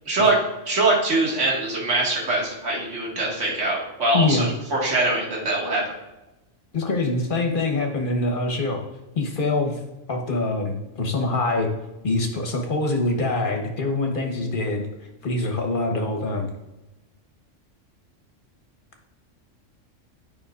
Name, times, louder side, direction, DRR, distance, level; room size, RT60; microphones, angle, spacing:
voice 1, 0.1-0.4 0.7-5.8, right 2 dB, 70° right, -4 dB, 2.3 m, -23 dB
voice 2, 4.1-4.5 6.7-8.8 9.1-9.8 10.1-11.7 12.0-14.9 15.2-16.5, left 2 dB, 45° left, 2 dB, 1.3 m, -24 dB
9.5 x 5.7 x 2.5 m, 0.99 s
omnidirectional pair, 1.3 m